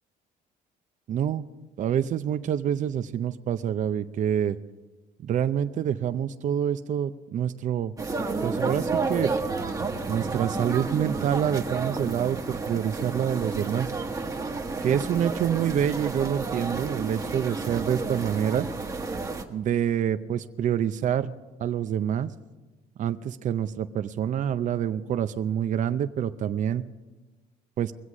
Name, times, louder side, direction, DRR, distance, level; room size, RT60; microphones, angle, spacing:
voice 1, 1.1-1.5 1.8-4.6 5.2-7.9 8.4-9.3 10.1-13.9 14.8-18.7 19.5-21.3 21.6-22.3 23.0-26.8 27.8-27.9, right 9 dB, 50° right, 11 dB, 0.6 m, -27 dB
sound 1, 8.0-19.4, right 3 dB, 20° right, 1.2 m, -31 dB
22.0 x 8.1 x 6.1 m, 1.2 s
cardioid pair, 110°, 17 cm